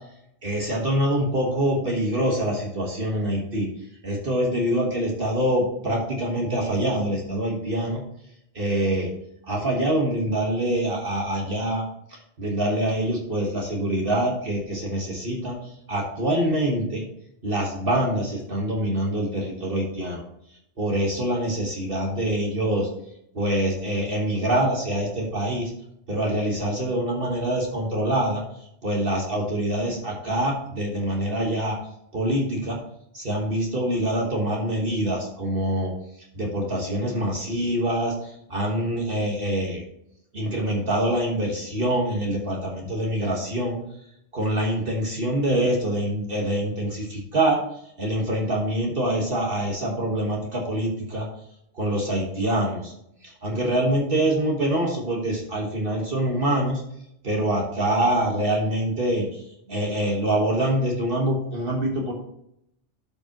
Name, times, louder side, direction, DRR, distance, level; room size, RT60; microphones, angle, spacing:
voice 1, 0.4-3.7 4.0-8.0 8.5-9.1 9.4-11.8 12.1-17.1 17.4-20.2 20.8-22.9 23.3-25.7 26.1-31.8 32.1-32.8 33.1-39.8 40.3-43.8 44.3-47.6 48.0-51.3 51.7-52.9 53.2-56.8 57.2-62.1, right 1 dB, 50° right, -1 dB, 1.6 m, -25 dB
12.0 x 5.1 x 2.9 m, 0.76 s
omnidirectional pair, 1.2 m